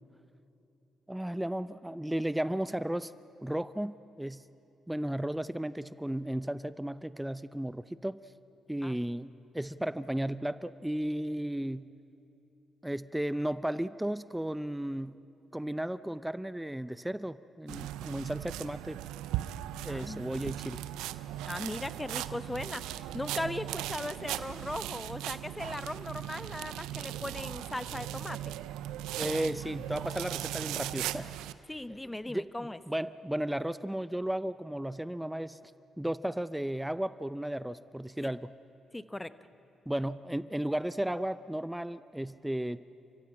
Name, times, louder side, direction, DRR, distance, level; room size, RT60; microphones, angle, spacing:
voice 1, 1.1-3.1 3.4-4.4 4.9-8.2 8.7-11.9 12.8-15.2 15.5-19.0 19.8-20.8 29.2-31.3 32.2-35.6 36.0-38.5 39.9-42.8, right 1 dB, 5° right, 15 dB, 0.6 m, -34 dB
sound 1, 17.7-31.5, right 13 dB, 85° right, 0.5 m, -38 dB
voice 2, 19.9-20.2 21.4-28.5 31.7-32.8 38.9-39.3, left 1 dB, 15° left, 13 dB, 1.0 m, -38 dB
28.5 x 15.0 x 8.7 m, 3.0 s
supercardioid pair, 55°, 0 cm